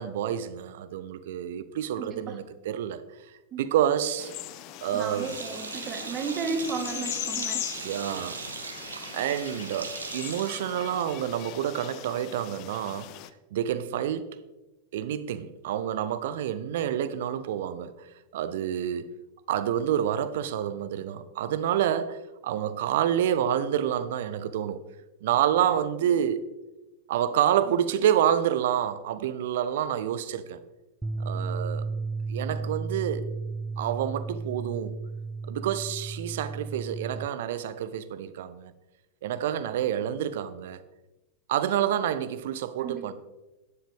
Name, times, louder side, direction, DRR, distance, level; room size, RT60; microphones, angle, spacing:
voice 1, 0.0-3.0 3.6-4.3 4.8-5.4 7.8-8.5 9.1-13.1 13.5-14.4 14.9-18.0 18.3-19.1 19.5-24.8 25.2-26.4 27.1-30.6 31.2-31.8 32.3-33.3 33.8-35.0 35.5-38.7 39.2-40.8 41.5-43.1, right 10 dB, 55° right, 0.6 m, -28 dB
voice 2, 2.0-2.4 3.5-3.6 4.9-7.7 42.8-43.1, right 4 dB, 30° right, 1.6 m, -34 dB
sound 1, 4.2-13.3, left 15 dB, 40° left, 0.6 m, -40 dB
Sink (filling or washing), 5.0-11.4, right 5 dB, 75° right, 1.1 m, -39 dB
sound 2, 31.0-37.3, right 4 dB, 5° right, 0.4 m, -34 dB
12.5 x 10.0 x 3.5 m
figure-of-eight pair, 90°, 0 cm